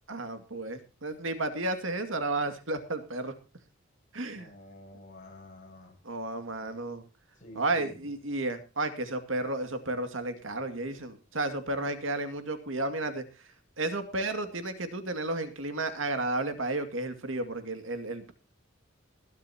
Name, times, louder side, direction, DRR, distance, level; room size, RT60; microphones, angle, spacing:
voice 1, 0.1-3.3 4.1-4.5 6.0-7.0 7.6-13.2 13.8-18.3, right 2 dB, 75° right, 8 dB, 2.3 m, -32 dB
voice 2, 4.3-5.9 7.3-8.1, left 1 dB, 40° left, 2 dB, 7.2 m, -50 dB
21.0 x 12.0 x 2.9 m, 0.30 s
head